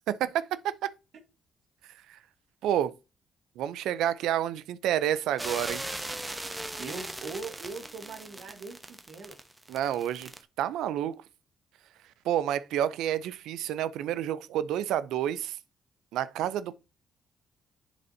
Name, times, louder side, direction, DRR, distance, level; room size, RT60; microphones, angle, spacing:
voice 1, 0.1-0.5 2.1-2.2 2.6-2.9 3.6-5.8 9.7-10.3 10.6-11.2 12.2-15.6 16.1-16.7, right 11 dB, 90° right, 0.4 m, -29 dB
sound 1, 5.4-10.4, right 1 dB, 10° right, 0.9 m, -38 dB
voice 2, 6.8-9.4, right 4 dB, 70° right, 1.3 m, -41 dB
10.5 x 4.1 x 2.7 m
cardioid pair, 90°, 0 cm